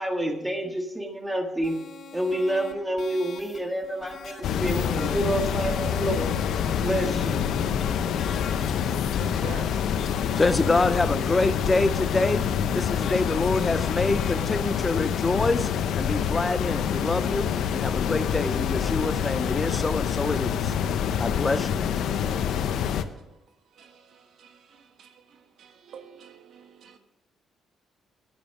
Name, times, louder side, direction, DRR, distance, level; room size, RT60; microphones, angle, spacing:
voice 1, 0.0-1.8 2.1-6.3 6.8-7.4, right 1 dB, 10° right, 4 dB, 1.7 m, -28 dB
sound 1, 1.6-14.5, left 4 dB, 60° left, 1.9 m, -42 dB
sound 2, 4.4-23.0, left 8 dB, 75° left, 0.7 m, -26 dB
voice 2, 9.1-9.8 21.1-21.3 22.0-22.2 23.8-27.0, right 6 dB, 70° right, 7 dB, 1.3 m, -46 dB
voice 3, 10.4-12.5 12.7-15.7 16.0-20.7 21.2-21.8, left 2 dB, 20° left, 13 dB, 0.4 m, -26 dB
10.5 x 9.4 x 4.8 m, 1.0 s
cardioid pair, 90°, 0 cm